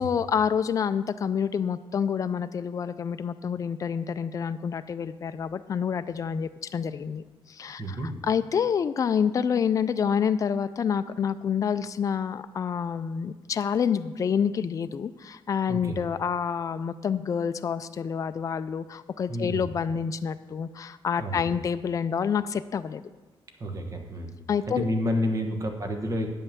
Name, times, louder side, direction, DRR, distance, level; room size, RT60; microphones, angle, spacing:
voice 1, 0.0-8.0 8.3-23.0 24.5-24.8, left 7 dB, 35° left, 11 dB, 0.4 m, -28 dB
voice 2, 7.8-8.2 15.7-16.0 19.3-19.6 21.2-21.5 23.6-24.4 24.7-26.3, equal, 35° right, 4 dB, 1.2 m, -30 dB
9.2 x 5.5 x 7.3 m, 1.2 s
cardioid pair, 140°, 10 cm